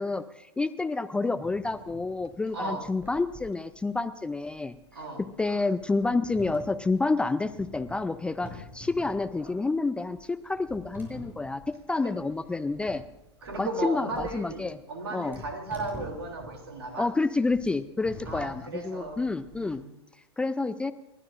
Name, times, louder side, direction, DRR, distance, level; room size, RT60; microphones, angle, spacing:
voice 1, 0.0-4.7 5.4-13.0 13.6-14.8 15.1-15.4 17.0-19.8 20.4-20.9, left 3 dB, 5° left, 12 dB, 0.4 m, -29 dB
sound 1, 1.4-19.7, left 1 dB, 15° right, 6.6 m, -48 dB
voice 2, 2.5-2.8 4.9-5.2 12.0-12.1 13.4-17.1 18.3-19.9, right 2 dB, 65° right, 3 dB, 3.0 m, -36 dB
30.0 x 12.5 x 2.5 m, 0.97 s
figure-of-eight pair, 95°, 14 cm